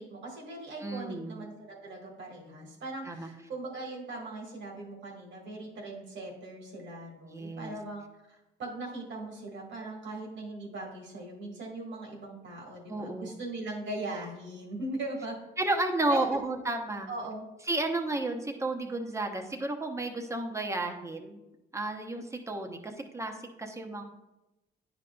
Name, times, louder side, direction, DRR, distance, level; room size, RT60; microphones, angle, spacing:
voice 1, 0.0-15.4 16.1-16.2 17.1-17.5, right 2 dB, 65° right, 0 dB, 1.8 m, -40 dB
voice 2, 0.8-1.4 3.0-3.3 7.2-7.7 12.9-13.3 15.6-17.1 17.7-21.4 21.7-24.0, right 2 dB, 15° right, 4 dB, 0.8 m, -32 dB
9.6 x 5.1 x 2.3 m, 0.97 s
cardioid pair, 90°, 20 cm